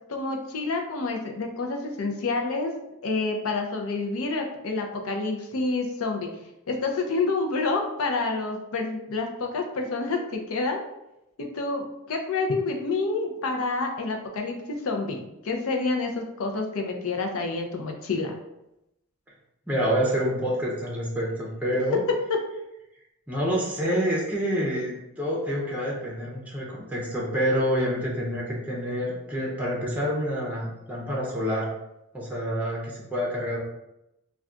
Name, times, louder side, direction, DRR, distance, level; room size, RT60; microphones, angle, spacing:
voice 1, 0.1-2.7 3.0-6.3 6.7-10.8 11.5-18.3, left 3 dB, 65° left, 3 dB, 0.5 m, -28 dB
voice 2, 19.7-22.0 23.3-31.7 32.1-33.6, equal, 5° right, -4 dB, 0.6 m, -27 dB
2.3 x 2.3 x 3.7 m, 0.87 s
head